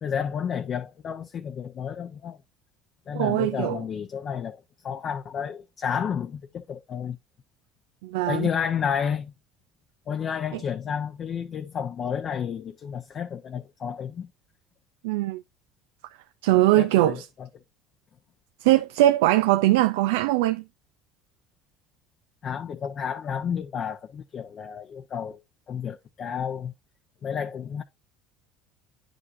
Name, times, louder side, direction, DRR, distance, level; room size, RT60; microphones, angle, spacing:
voice 1, 0.0-2.4 3.1-7.2 8.3-9.3 10.1-14.3 16.8-17.5 22.4-25.4 25.7-26.7 27.2-27.8, left 7 dB, 45° left, 0.8 m, -31 dB
voice 2, 3.1-3.8 8.0-8.5 15.0-15.4 16.4-17.2 18.6-20.6, right 15 dB, 85° right, 0.4 m, -21 dB
9.6 x 5.1 x 2.6 m
supercardioid pair, 95°, 0 cm